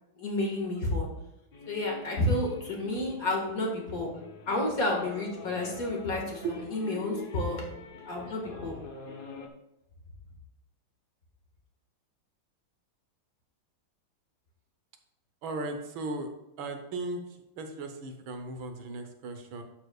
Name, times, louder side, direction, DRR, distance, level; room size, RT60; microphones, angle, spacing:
voice 1, 0.2-1.1 1.7-4.1 4.5-6.4 6.7-7.6 8.1-8.7, left 1 dB, 45° left, 0 dB, 2.1 m, -30 dB
sound 1, 1.5-9.5, left 4 dB, 90° left, 0.4 m, -45 dB
voice 2, 15.4-16.3 16.6-17.2 17.6-19.6, right 2 dB, 80° right, 6 dB, 1.7 m, -36 dB
11.5 x 7.4 x 2.3 m, 0.91 s
omnidirectional pair, 2.2 m